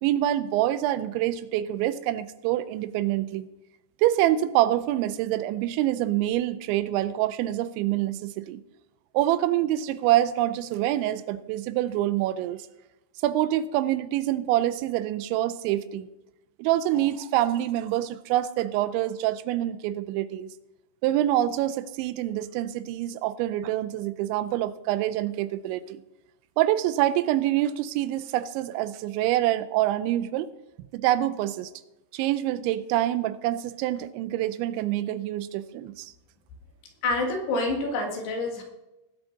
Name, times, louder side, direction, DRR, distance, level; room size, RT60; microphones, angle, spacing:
voice 1, 0.0-3.5 4.0-8.6 9.1-12.6 13.2-16.1 16.6-20.5 21.0-26.0 26.6-30.5 30.9-31.7 32.1-36.1, right 13 dB, 85° right, 14 dB, 2.9 m, -26 dB
voice 2, 37.0-38.6, left 2 dB, 65° left, 2 dB, 3.6 m, -27 dB
19.5 x 8.2 x 4.0 m, 0.99 s
omnidirectional pair, 5.3 m